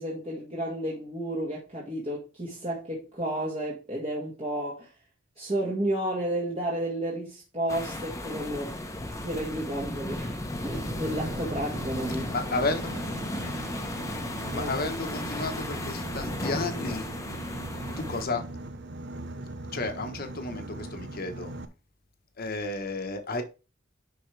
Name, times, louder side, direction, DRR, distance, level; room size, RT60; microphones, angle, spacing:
voice 1, 0.0-4.9 5.4-8.8 9.2-12.3 14.5-14.7, right 1 dB, 30° right, 2.0 m, -32 dB
sound 1, 7.7-18.2, left 1 dB, 15° left, 1.1 m, -35 dB
Boat Water vehicle, 10.7-21.7, right 2 dB, 60° right, 0.9 m, -39 dB
voice 2, 12.3-13.0 13.3-13.8 14.5-17.1 18.0-18.4 19.7-21.5 22.4-23.4, left 3 dB, 50° left, 1.3 m, -32 dB
10.5 x 4.7 x 3.4 m
head